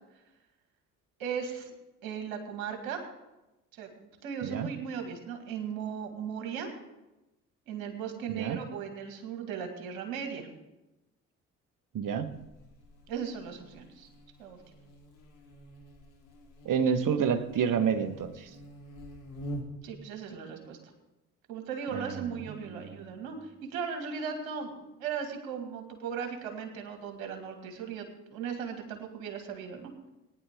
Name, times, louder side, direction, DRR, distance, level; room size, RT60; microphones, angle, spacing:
voice 1, 1.2-1.7 2.0-3.1 3.7-6.7 7.7-10.5 13.1-14.1 14.4-14.6 19.8-20.9 21.5-29.9, right 7 dB, 80° right, 4 dB, 2.1 m, -37 dB
voice 2, 11.9-12.3 16.6-18.5 21.9-22.2 22.5-22.9, right 7 dB, 50° right, 10 dB, 1.4 m, -29 dB
Buzz, 12.2-20.0, right 1 dB, 75° left, 2.3 m, -46 dB
19.0 x 9.7 x 3.7 m, 0.99 s
hypercardioid pair, 50°, 41 cm